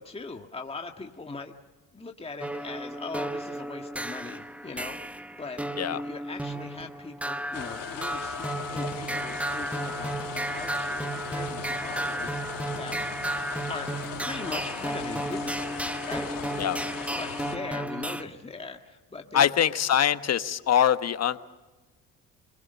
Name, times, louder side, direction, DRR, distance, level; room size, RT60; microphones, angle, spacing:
voice 1, 0.0-1.5 1.9-5.1 5.4-13.0 13.7-13.9 14.2-15.8 16.0-19.6, left 3 dB, 15° left, 3 dB, 1.8 m, -40 dB
sound 1, 2.4-18.2, right 1 dB, 5° right, 1.1 m, -33 dB
sound 2, 7.5-17.6, left 10 dB, 65° left, 2.7 m, -39 dB
voice 2, 19.3-21.4, left 9 dB, 45° left, 12 dB, 1.2 m, -23 dB
27.0 x 21.5 x 6.9 m, 1.2 s
supercardioid pair, 85°, 37 cm